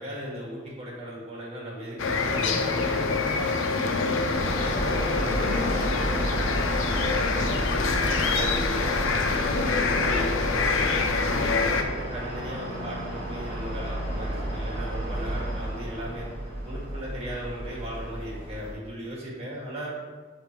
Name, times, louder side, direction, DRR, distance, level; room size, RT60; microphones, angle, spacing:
voice 1, 0.0-4.2 4.8-10.7 11.2-16.3 16.6-19.9, equal, 30° right, -5 dB, 1.8 m, -37 dB
sound 1, 2.0-11.8, left 4 dB, 75° left, 0.5 m, -26 dB
sound 2, 4.3-18.7, right 1 dB, 30° left, 1.6 m, -32 dB
6.6 x 3.5 x 4.4 m, 1.4 s
head